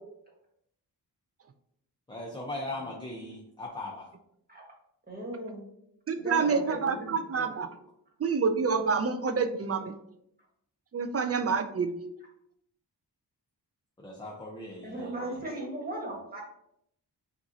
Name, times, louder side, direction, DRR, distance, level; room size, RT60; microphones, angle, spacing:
voice 1, 2.1-4.1 14.0-15.3, left 2 dB, 10° left, -3 dB, 0.7 m, -39 dB
voice 2, 5.1-5.7 6.2-7.5 14.8-16.4, right 1 dB, 20° right, -2 dB, 1.4 m, -37 dB
voice 3, 6.1-7.7 8.2-9.9 10.9-12.0, right 5 dB, 40° right, 8 dB, 0.4 m, -28 dB
6.0 x 2.5 x 2.7 m, 0.76 s
wide cardioid pair, 110°, 41 cm